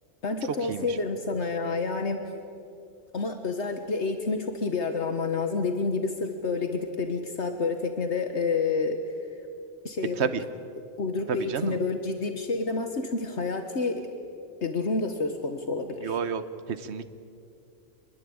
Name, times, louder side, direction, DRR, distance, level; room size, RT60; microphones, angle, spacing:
voice 1, 0.2-2.2 3.1-9.0 9.8-10.2 11.0-14.1 14.6-16.2, left 4 dB, 70° left, 6 dB, 1.7 m, -29 dB
voice 2, 11.3-11.8 16.0-16.4 16.7-17.1, right 6 dB, 65° right, 12 dB, 1.3 m, -30 dB
25.5 x 21.5 x 8.8 m, 2.5 s
omnidirectional pair, 1.2 m